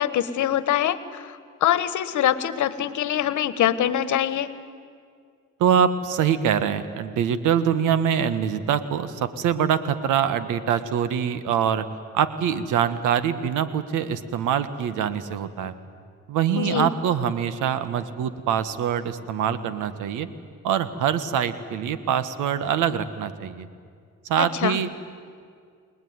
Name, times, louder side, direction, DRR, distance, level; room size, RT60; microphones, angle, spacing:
voice 1, 0.0-4.5 16.5-16.9 24.4-24.8, left 11 dB, 75° left, 14 dB, 1.4 m, -24 dB
voice 2, 5.6-11.9 12.1-15.7 16.3-20.3 20.6-23.7 24.2-24.9, right 8 dB, 90° right, 13 dB, 1.5 m, -24 dB
29.5 x 20.0 x 9.6 m, 2.2 s
cardioid pair, 90°, 30 cm